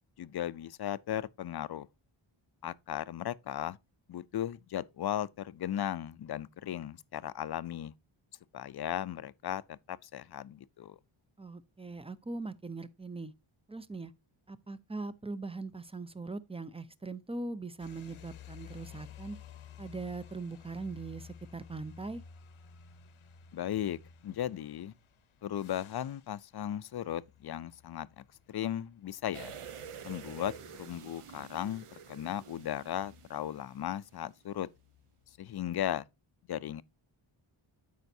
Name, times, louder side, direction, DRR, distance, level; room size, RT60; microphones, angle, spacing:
voice 1, 0.2-1.9 2.6-3.8 4.1-7.9 8.5-11.0 23.5-24.0 24.2-24.9 25.4-29.5 30.0-34.7 35.4-36.0 36.5-36.8, left 11 dB, 50° left, 0.5 m, -36 dB
voice 2, 11.4-13.3 13.7-14.1 14.5-19.4 19.8-22.2, right 3 dB, 15° right, 0.4 m, -41 dB
sound 1, 17.8-33.8 34.6-35.9, left 8 dB, 70° left, 0.9 m, -54 dB
sound 2, 29.3-34.2 34.5-34.6, right 7 dB, 85° right, 1.0 m, -48 dB
12.5 x 5.1 x 2.6 m
wide cardioid pair, 145°, 50 cm